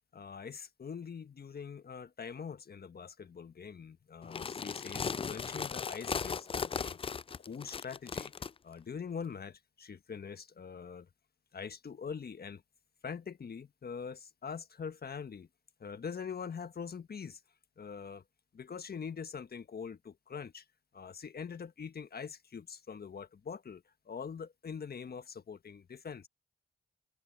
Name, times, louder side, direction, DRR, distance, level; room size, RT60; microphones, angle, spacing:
voice 1, 0.1-7.0 7.4-8.3 8.6-11.1 11.5-12.6 13.0-15.5 15.8-17.4 17.8-18.2 18.5-20.6 20.9-26.3, left 6 dB, 50° left, 1.4 m, -43 dB
sound 1, 4.2-8.5, left 6 dB, 25° left, 0.4 m, -37 dB
open air
supercardioid pair, 45°, 21 cm